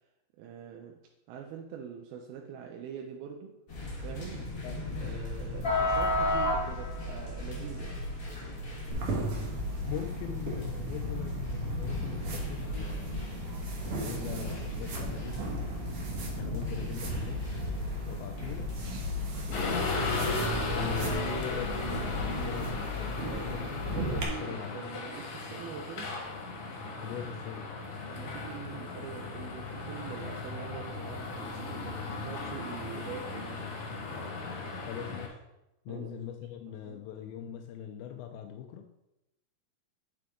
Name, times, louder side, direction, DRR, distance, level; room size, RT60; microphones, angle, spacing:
voice 1, 0.4-1.0 1.3-3.6 4.0-4.5 5.0-8.0 23.2-26.2 28.1-33.7 35.9-36.2 36.8-37.1, right 7 dB, 90° right, 1 dB, 2.6 m, -44 dB
sound 1, 3.7-22.7, left 1 dB, 45° left, 1.1 m, -36 dB
voice 2, 4.6-5.0 9.8-13.3 13.8-15.6 16.4-17.5 18.1-18.8 19.5-24.9 27.0-27.7 34.8-35.4 35.9-38.9, left 9 dB, 85° left, 4 dB, 2.3 m, -41 dB
sound 2, 8.9-24.2, equal, 65° right, 1.4 m, -36 dB
sound 3, 19.5-35.3, left 3 dB, 60° left, 2.0 m, -36 dB
9.3 x 4.5 x 3.7 m, 0.90 s
omnidirectional pair, 4.3 m